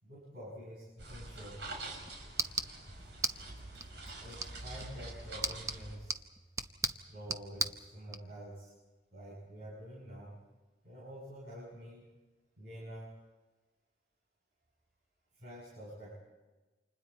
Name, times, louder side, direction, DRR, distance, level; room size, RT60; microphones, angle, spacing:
voice 1, 0.0-1.6 4.2-6.2 7.1-8.7 9.1-10.4 10.8-12.1 12.6-13.1 15.3-16.2, equal, 65° right, -7 dB, 7.8 m, -48 dB
sound 1, 1.0-6.0, right 2 dB, 90° right, 6.1 m, -46 dB
sound 2, 1.6-8.2, right 3 dB, 15° right, 0.8 m, -40 dB
30.0 x 27.0 x 4.4 m, 1.2 s
head